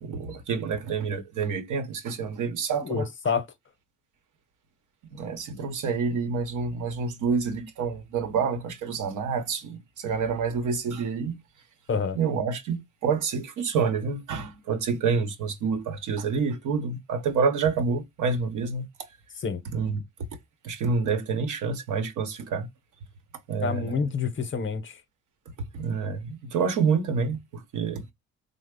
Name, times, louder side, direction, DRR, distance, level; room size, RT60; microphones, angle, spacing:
voice 1, 0.0-3.1 5.1-11.4 12.1-18.9 19.6-20.0 20.6-22.7 23.5-24.1 25.6-28.1, right 5 dB, 80° right, 0.9 m, -28 dB
voice 2, 2.9-3.4 11.9-12.2 19.4-19.6 23.6-24.9, left 5 dB, 40° left, 0.7 m, -27 dB
3.2 x 2.0 x 3.6 m
cardioid pair, 90°, 30 cm